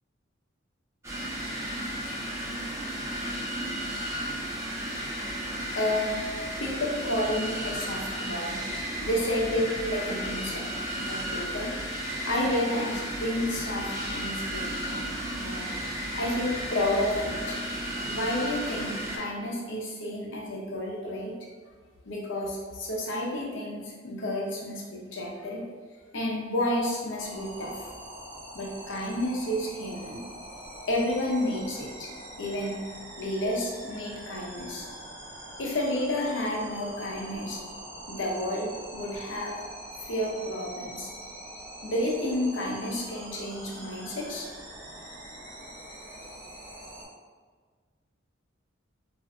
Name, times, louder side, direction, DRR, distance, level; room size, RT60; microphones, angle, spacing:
sound 1, 1.0-19.2, equal, 15° right, 0.5 m, -34 dB
voice 1, 5.7-6.3 6.6-8.6 9.0-11.7 12.3-15.1 15.4-15.7 16.1-17.6 18.0-21.3 22.1-25.6 26.1-27.9 28.5-30.2 30.9-32.1 32.4-32.8 33.2-34.9 35.6-37.6 38.1-39.6 40.0-41.1 41.8-44.5, left 1 dB, 70° left, -2 dB, 0.6 m, -31 dB
sound 2, 27.2-47.1, right 1 dB, 70° right, 1.1 m, -44 dB
2.5 x 2.2 x 3.5 m, 1.5 s
head